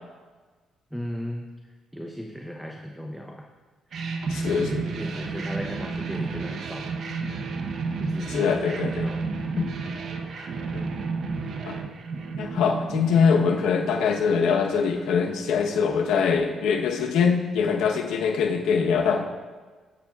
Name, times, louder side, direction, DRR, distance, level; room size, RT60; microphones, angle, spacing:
voice 1, 0.9-1.5 1.9-3.5 3.9-4.0 4.4-6.9 8.0-9.3, equal, 5° right, 2 dB, 0.8 m, -36 dB
sound 1, 3.9-14.4, right 4 dB, 65° right, 0.8 m, -32 dB
voice 2, 4.3-4.8 8.3-9.1 9.6-9.7 10.4-10.5 10.7-10.8 11.6-11.8 12.4-19.2, left 6 dB, 90° left, 1 dB, 0.9 m, -23 dB
17.5 x 8.5 x 2.4 m, 1.4 s
cardioid pair, 90°, 0 cm